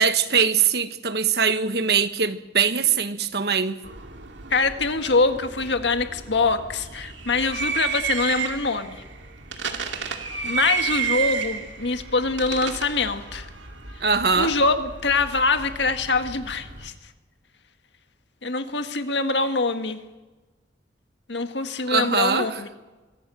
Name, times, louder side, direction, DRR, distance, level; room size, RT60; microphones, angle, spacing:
voice 1, 0.0-3.8 14.0-14.5 21.9-22.6, right 6 dB, 60° right, 1.3 m, -22 dB
sound 1, 3.8-16.9, right 6 dB, 90° right, 2.3 m, -32 dB
voice 2, 4.5-9.0 10.1-13.5 14.4-16.9 18.4-20.0 21.3-22.7, left 3 dB, 75° left, 1.7 m, -24 dB
24.0 x 16.5 x 7.8 m
head